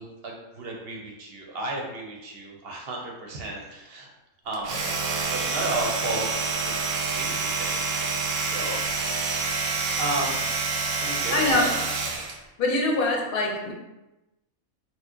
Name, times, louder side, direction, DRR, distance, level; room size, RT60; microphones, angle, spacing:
voice 1, 0.0-4.1 4.4-4.9 5.1-8.8 9.2-11.8, right 2 dB, 60° right, -1 dB, 0.6 m, -34 dB
Domestic sounds home sounds, 4.5-12.4, right 4 dB, 90° right, 1.1 m, -27 dB
voice 2, 11.3-11.7 12.6-13.7, left 2 dB, 50° left, -1 dB, 0.7 m, -23 dB
2.9 x 2.1 x 3.5 m, 1.0 s
omnidirectional pair, 1.4 m